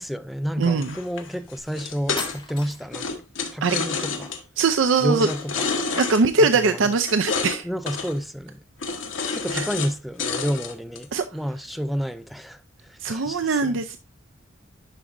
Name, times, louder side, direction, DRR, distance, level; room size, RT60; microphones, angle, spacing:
voice 1, 0.0-3.2 3.5-4.3 5.0-5.7 6.4-6.9 7.6-8.6 9.3-13.8, equal, ahead, 0.4 m, -30 dB
voice 2, 0.6-1.0 3.6-3.8 4.6-5.3 6.0-7.7 9.5-9.7 11.1-11.2 13.0-14.0, right 4 dB, 80° right, 0.5 m, -21 dB
sound 1, 0.8-2.6 2.9-4.4 5.2-6.2 7.1-7.6 7.9-8.2 8.8-9.9 10.2-11.0, left 5 dB, 80° left, 1.2 m, -29 dB
sound 2, 1.6-1.7 2.2-3.1, left 4 dB, 25° left, 2.0 m, -35 dB
11.0 x 4.9 x 2.6 m
head